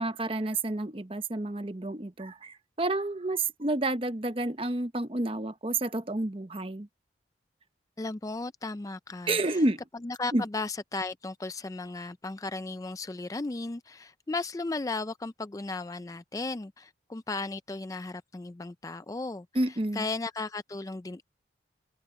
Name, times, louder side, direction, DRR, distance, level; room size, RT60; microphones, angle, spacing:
voice 1, 0.0-6.9 9.3-9.8 10.3-10.4 19.5-20.1, right 2 dB, 30° right, 0.9 m, -30 dB
voice 2, 8.0-9.6 10.0-19.5 19.9-21.2, left 3 dB, 20° left, 0.3 m, -35 dB
open air
head